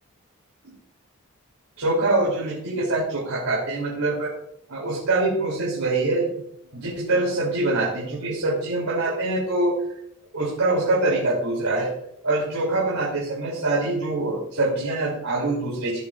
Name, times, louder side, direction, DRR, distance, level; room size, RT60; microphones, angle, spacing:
voice 1, 1.8-4.3 4.7-6.4 6.7-9.8 10.3-11.9 12.2-16.0, right 2 dB, 80° right, -5 dB, 3.2 m, -24 dB
16.5 x 7.9 x 2.5 m, 0.74 s
head